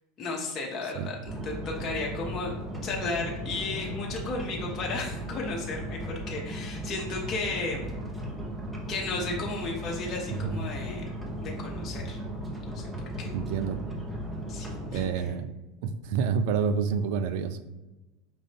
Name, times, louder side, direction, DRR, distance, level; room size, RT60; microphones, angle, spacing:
voice 1, 0.2-2.5 2.8-7.9 8.9-11.0 11.4-12.2 12.6-12.8 13.2-13.3 14.5-15.3, left 3 dB, 40° left, -1 dB, 0.9 m, -34 dB
sound 1, 1.2-15.1, equal, 15° right, 0.9 m, -36 dB
voice 2, 10.3-10.6 13.3-13.8 14.9-15.5 15.8-17.6, right 6 dB, 65° right, 10 dB, 0.4 m, -28 dB
5.2 x 2.6 x 3.5 m, 1.1 s
hypercardioid pair, 85°, 0 cm